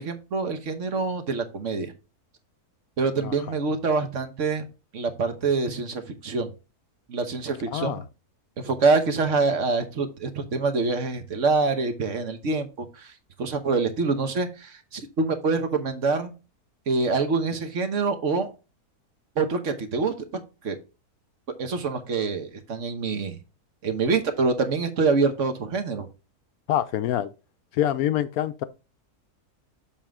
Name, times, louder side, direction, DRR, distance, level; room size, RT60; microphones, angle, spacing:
voice 1, 0.0-1.9 3.0-4.6 4.9-6.5 7.1-8.0 8.6-13.1 13.4-16.3 16.9-18.5 19.4-20.8 21.6-23.4 23.8-26.1, right 4 dB, 55° right, 1.4 m, -25 dB
voice 2, 7.7-8.0 26.7-27.3 27.7-28.6, left 11 dB, 70° left, 1.0 m, -25 dB
7.3 x 5.4 x 3.6 m
omnidirectional pair, 1.7 m